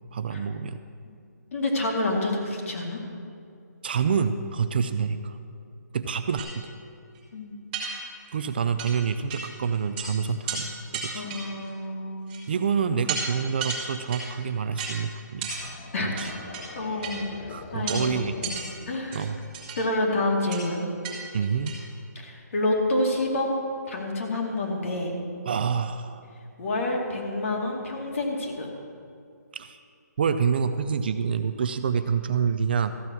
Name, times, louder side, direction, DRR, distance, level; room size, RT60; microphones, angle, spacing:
voice 1, 0.1-0.8 3.8-5.4 5.9-6.7 8.3-11.3 12.5-15.8 16.0-16.3 16.8-17.0 17.5-18.4 19.1-19.4 21.3-21.7 25.5-26.2 29.5-29.8 30.2-32.9, right 6 dB, 35° right, 10 dB, 0.4 m, -27 dB
voice 2, 1.5-3.0 6.1-6.2 7.3-7.6 11.1-12.4 15.9-16.1 16.7-17.2 17.7-18.2 18.4-18.5 18.9-19.2 19.8-20.8 22.1-23.5 23.9-25.1 26.6-28.7, left 2 dB, 50° left, 0 dB, 2.5 m, -28 dB
sound 1, 6.4-6.5 7.1-7.2 7.7-8.4 8.8-8.9 9.3-9.5 9.7-10.1 10.5-10.6 10.9-11.7 12.3-12.6 13.1-13.2 13.6-14.3 14.8-14.9 15.4-15.6 16.2-16.6 17.0-17.2 17.9-18.0 18.4-18.7 19.1-19.8 20.5-20.6 21.0-21.2 21.4-21.8, right 5 dB, 15° right, 2.6 m, -33 dB
sound 2, 15.4-19.3, left 4 dB, 25° left, 0.7 m, -43 dB
14.0 x 8.6 x 6.2 m, 2.5 s
hypercardioid pair, 165°, 10 cm